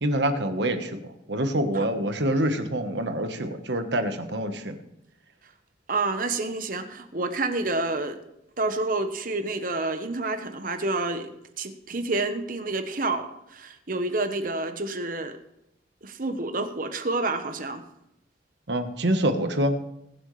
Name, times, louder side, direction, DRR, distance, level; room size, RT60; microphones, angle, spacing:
voice 1, 0.0-4.8 18.7-19.8, right 1 dB, 75° right, 7 dB, 1.3 m, -26 dB
voice 2, 5.9-8.2 8.6-15.4 16.0-17.8, right 2 dB, 50° right, 8 dB, 1.1 m, -29 dB
21.5 x 7.8 x 3.3 m, 0.84 s
head